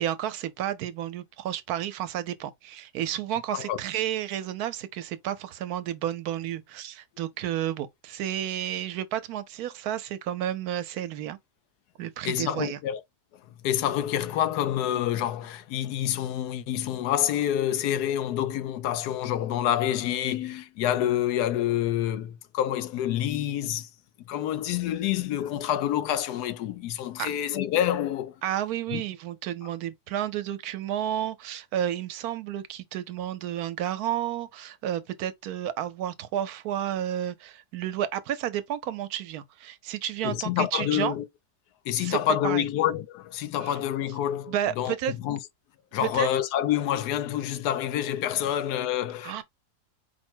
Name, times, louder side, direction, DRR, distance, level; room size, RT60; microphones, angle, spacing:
voice 1, 0.0-11.4 12.0-12.8 27.2-27.3 28.4-41.1 42.0-42.2 42.4-42.7 44.5-45.1 46.0-46.3 49.2-49.4, right 11 dB, 80° right, 1.1 m, -31 dB
voice 2, 12.2-13.0 13.6-23.9 24.3-28.3 28.9-29.0 40.2-41.3 41.9-45.4 45.9-49.4, left 11 dB, 85° left, 1.1 m, -27 dB
4.7 x 2.1 x 4.3 m
omnidirectional pair, 1.6 m